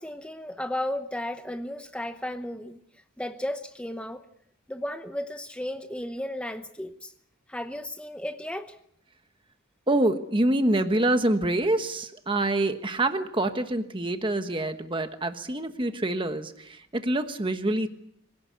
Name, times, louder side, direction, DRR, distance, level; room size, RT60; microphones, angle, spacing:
voice 1, 0.0-2.8 3.2-4.2 4.7-7.1 7.5-8.7, left 1 dB, 5° left, 7 dB, 0.9 m, -34 dB
voice 2, 9.9-17.9, right 1 dB, 25° right, 8 dB, 1.2 m, -26 dB
25.0 x 17.5 x 8.3 m, 0.71 s
head